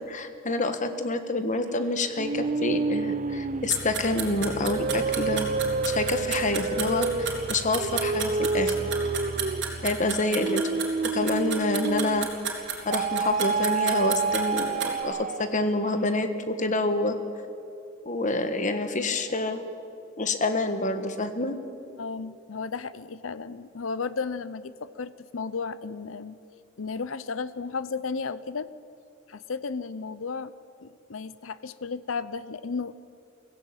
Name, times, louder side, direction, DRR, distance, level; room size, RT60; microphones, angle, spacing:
voice 1, 0.0-5.5 5.9-8.7 9.8-10.7 11.1-12.3 12.8-17.1 18.0-19.6 20.2-21.6, left 2 dB, 40° left, 8 dB, 1.5 m, -27 dB
sound 1, 2.2-12.4 12.9-15.7, right 4 dB, 40° right, 0.5 m, -29 dB
sound 2, 3.7-14.9, right 7 dB, 60° right, 3.7 m, -32 dB
voice 2, 22.0-26.4 26.8-28.7 29.3-30.5 30.8-33.0, left 4 dB, 85° left, 15 dB, 0.7 m, -34 dB
23.5 x 16.0 x 8.9 m, 2.6 s
head